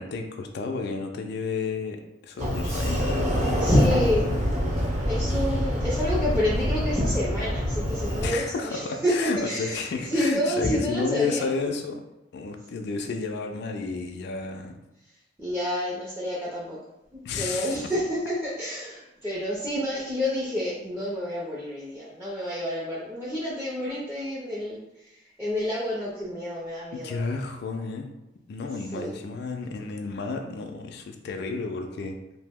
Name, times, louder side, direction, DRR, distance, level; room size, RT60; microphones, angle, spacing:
voice 1, 0.0-3.3 8.2-12.0 12.3-14.7 17.2-17.8 26.9-28.1 28.5-32.2, left 4 dB, 60° left, 4 dB, 0.3 m, -32 dB
Sliding door, 2.4-8.3, equal, 35° right, 0.8 m, -26 dB
voice 2, 3.6-4.3 5.1-11.4 15.4-16.8 17.1-27.3 28.9-29.2, left 1 dB, 10° right, -7 dB, 0.5 m, -28 dB
2.8 x 2.0 x 3.4 m, 0.93 s
head